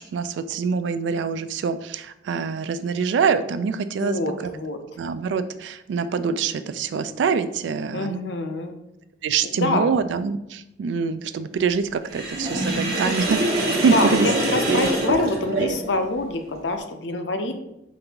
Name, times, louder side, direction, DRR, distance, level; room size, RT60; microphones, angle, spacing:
voice 1, 0.1-4.2 5.0-8.2 9.2-14.3 14.7-14.9 15.5-15.8, right 5 dB, 85° right, 12 dB, 0.3 m, -25 dB
voice 2, 4.0-4.8 7.9-8.7 9.5-9.9 13.9-17.5, left 2 dB, 80° left, 6 dB, 0.5 m, -25 dB
Sink (filling or washing), 12.1-16.0, right 1 dB, 55° right, 1.0 m, -24 dB
5.1 x 2.5 x 2.8 m, 0.86 s
head